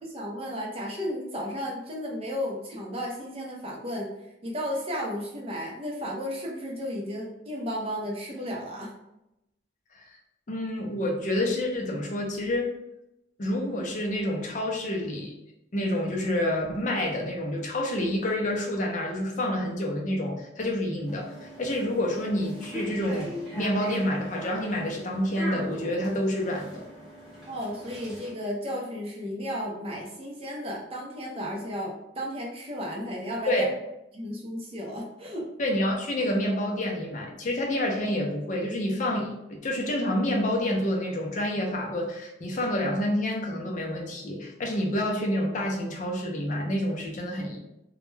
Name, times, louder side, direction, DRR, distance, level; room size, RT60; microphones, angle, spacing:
voice 1, 0.0-4.1 4.4-8.9 27.5-33.7 34.1-35.5, equal, 30° right, -2 dB, 0.5 m, -34 dB
voice 2, 10.5-12.7 13.4-15.3 15.7-21.3 21.6-26.8 33.5-33.7 35.6-47.6, left 1 dB, 40° left, 0 dB, 0.5 m, -28 dB
sound 1, 21.1-28.3, equal, ahead, 0.9 m, -40 dB
2.2 x 2.1 x 3.1 m, 0.88 s
head